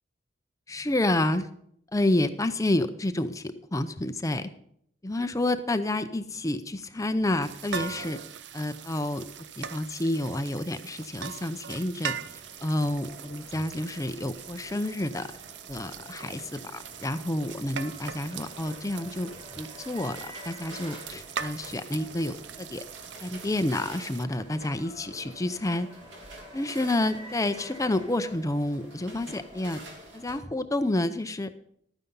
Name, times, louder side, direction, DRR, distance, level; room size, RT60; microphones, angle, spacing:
voice 1, 0.7-1.5 1.9-4.5 5.0-8.2 8.5-9.3 9.6-15.3 15.7-16.6 17.0-22.8 23.2-25.9 26.5-29.8 30.1-31.5, left 1 dB, 20° left, 10 dB, 0.6 m, -29 dB
sound 1, 7.4-24.2, right 7 dB, 70° right, 0.6 m, -41 dB
sound 2, 12.3-30.4, right 1 dB, 85° right, 3.1 m, -49 dB
sound 3, 17.8-21.1 23.5-29.0, equal, 35° right, 2.3 m, -49 dB
12.5 x 9.6 x 5.4 m, 0.69 s
head